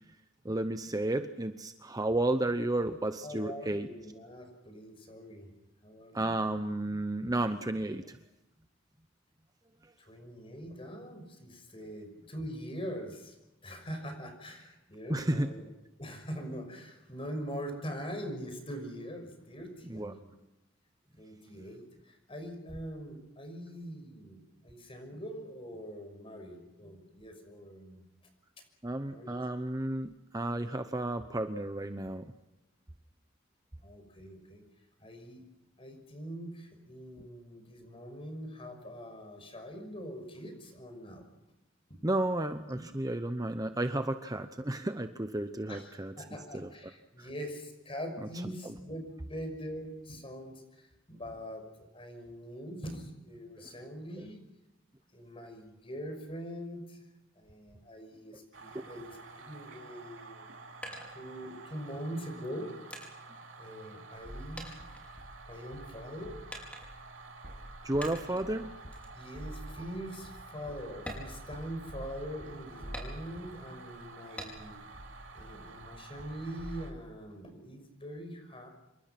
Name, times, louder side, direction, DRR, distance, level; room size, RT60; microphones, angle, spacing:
voice 1, 0.4-3.9 6.1-8.2 15.1-15.5 19.9-20.1 28.8-32.3 42.0-46.1 46.5-46.7 47.2-47.3 67.8-68.7, right 1 dB, 20° right, 8 dB, 0.8 m, -32 dB
voice 2, 3.2-5.5 5.8-6.3 10.0-13.4 13.6-15.7 16.0-20.3 21.2-28.0 29.1-29.5 33.8-34.6 35.0-35.4 35.8-41.2 41.9-42.0 42.7-42.8 45.7-51.6 51.9-54.4 55.1-57.0 57.3-60.5 60.9-62.7 63.6-64.7 65.5-66.3 68.2-68.4 69.1-74.8 75.3-78.7, equal, 30° left, 6 dB, 6.0 m, -43 dB
sound 1, 58.5-76.9, right 3 dB, 70° right, 3.2 m, -50 dB
sound 2, 60.3-61.8 62.4-64.3 64.6-65.7 66.5-67.2 68.0-68.5 68.9-69.2 69.6-69.7 70.2-70.3 70.9-72.1 72.9-73.6 74.4-74.9 75.3-76.2, equal, 5° left, 5.2 m, -46 dB
sound 3, 64.2-64.5 64.8-65.9 66.2-66.5 66.8-73.6 73.9-74.0 74.5-76.8, equal, 45° right, 6.2 m, -47 dB
27.5 x 24.0 x 6.0 m, 0.95 s
head